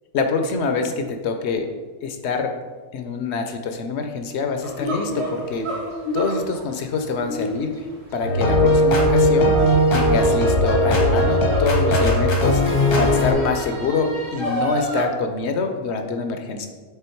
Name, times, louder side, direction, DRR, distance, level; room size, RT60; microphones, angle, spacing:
voice 1, 0.1-1.7 2.0-2.6 2.9-5.8 6.1-7.7 8.1-9.6 9.9-16.7, left 4 dB, 60° left, 6 dB, 0.7 m, -25 dB
sound 1, 4.6-15.0, right 1 dB, 45° right, 1.6 m, -30 dB
sound 2, 8.2-13.3, equal, 90° left, 1.7 m, -18 dB
6.9 x 3.7 x 4.5 m, 1.4 s
omnidirectional pair, 1.6 m